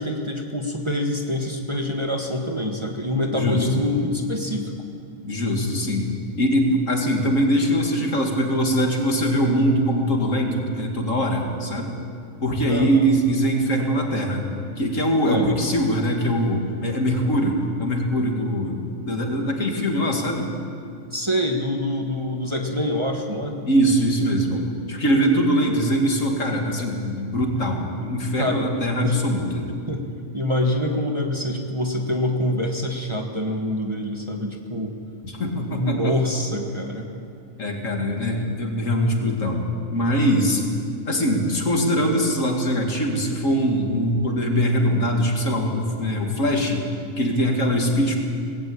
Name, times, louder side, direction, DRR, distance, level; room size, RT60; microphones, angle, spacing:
voice 1, 0.0-4.7 12.7-13.0 15.2-15.5 21.1-23.6 28.3-28.7 29.0-29.3 29.9-30.0 30.3-34.9 35.7-37.1, left 1 dB, 20° right, 1 dB, 1.6 m, -25 dB
voice 2, 3.3-3.7 5.2-6.1 6.4-11.9 12.4-14.4 14.8-18.8 19.1-20.5 23.7-29.7 35.2-36.2 37.6-39.6 39.9-40.6 41.1-46.8 47.2-48.2, equal, 65° left, 1 dB, 2.6 m, -22 dB
19.5 x 15.5 x 8.7 m, 2.4 s
omnidirectional pair, 1.4 m